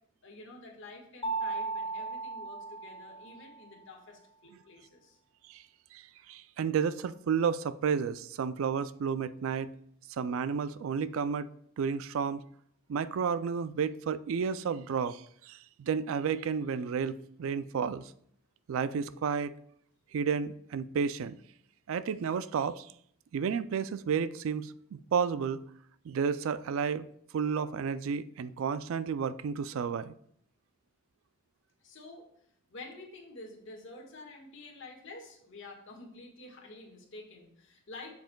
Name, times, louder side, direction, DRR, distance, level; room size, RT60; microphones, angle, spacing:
voice 1, 0.2-5.2 31.8-32.3 32.7-38.1, left 2 dB, 60° left, 1.5 m, -49 dB
Mallet percussion, 1.2-3.7, right 3 dB, 25° left, 0.4 m, -36 dB
voice 2, 5.9-9.7 10.2-11.5 11.8-12.4 12.9-18.1 18.7-19.5 20.1-21.4 21.9-22.9 23.3-25.6 26.1-27.1 27.3-30.1, right 6 dB, 70° right, 0.3 m, -31 dB
7.5 x 7.2 x 2.2 m
head